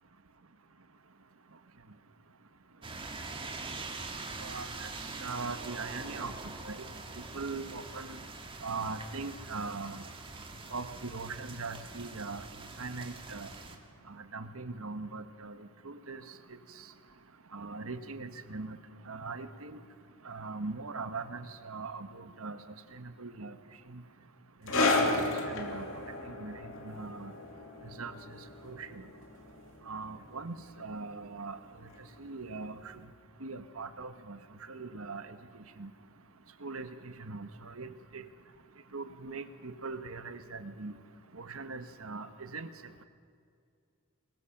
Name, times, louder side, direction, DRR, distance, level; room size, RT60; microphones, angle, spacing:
sound 1, 2.8-13.8, right 3 dB, 25° right, 2.0 m, -44 dB
voice 1, 4.4-4.9 5.2-6.3 6.7-6.8 7.2-8.2 8.6-10.0 10.7-12.4 12.8-13.5 14.1-16.2 17.5-18.8 19.1-19.8 20.2-22.6 22.9-23.5 23.9-24.0 24.7-25.9 26.3-27.3 28.0-28.1 28.6-29.1 29.9-31.6 32.2-32.8 33.4-34.4 34.7-35.3 35.8-35.9 36.6-38.3 38.9-40.9 41.3-42.7, right 3 dB, 80° right, 9 dB, 1.4 m, -40 dB
sound 2, 24.7-31.7 31.9-32.2 32.9-33.0, left 2 dB, 65° left, 2.8 m, -33 dB
25.0 x 21.5 x 6.0 m, 2.3 s
head